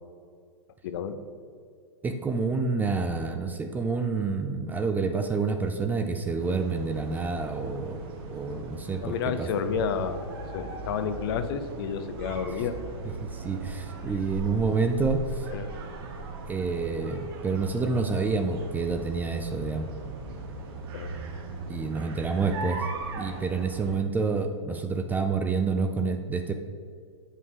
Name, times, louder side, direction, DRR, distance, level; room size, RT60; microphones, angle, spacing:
voice 1, 0.8-1.2 9.0-10.2 10.5-12.8 14.1-14.2 15.5-15.7 20.9-21.1, left 6 dB, 50° left, 10 dB, 0.6 m, -30 dB
voice 2, 2.0-8.0 8.3-9.5 13.3-15.5 16.5-19.9 21.7-22.8 23.1-26.5, right 4 dB, 10° right, 6 dB, 0.3 m, -28 dB
sound 1, 6.4-24.0, right 3 dB, 50° right, 1.0 m, -39 dB
7.8 x 5.4 x 3.6 m, 2.2 s
hypercardioid pair, 110°, 16 cm